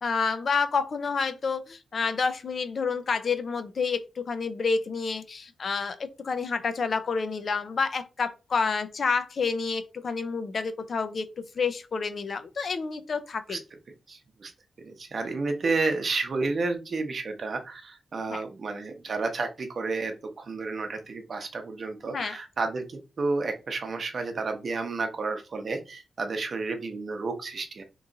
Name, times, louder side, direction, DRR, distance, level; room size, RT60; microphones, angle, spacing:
voice 1, 0.0-13.6 18.3-18.4 22.1-22.4, left 5 dB, 50° left, 0.5 m, -29 dB
voice 2, 14.1-14.5 14.8-27.8, right 3 dB, 50° right, 0.7 m, -31 dB
3.0 x 2.4 x 3.8 m
wide cardioid pair, 140°, 0 cm